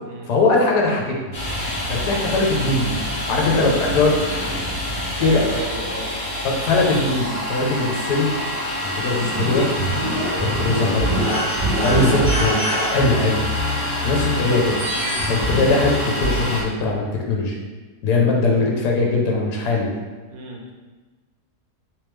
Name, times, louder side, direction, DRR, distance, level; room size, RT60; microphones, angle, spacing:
voice 1, 0.3-1.2 1.9-2.9 3.3-4.8 5.2-5.4 6.4-8.3 8.8-9.7 10.4-11.2 11.8-12.6 12.9-13.4 14.0-14.8 15.3-17.5 18.0-19.9, left 3 dB, 80° left, -1 dB, 1.3 m, -20 dB
Domestic sounds home sounds, 1.3-16.6, equal, 40° left, 0.6 m, -27 dB
sound 1, 3.4-10.4, left 2 dB, 55° right, 1.1 m, -40 dB
voice 2, 5.2-6.1 13.8-14.1 15.0-15.3 20.3-20.6, right 3 dB, 75° right, 0 dB, 1.1 m, -35 dB
sound 2, 9.2-16.6, equal, 25° right, 1.0 m, -25 dB
3.5 x 3.1 x 3.1 m, 1.3 s
omnidirectional pair, 1.8 m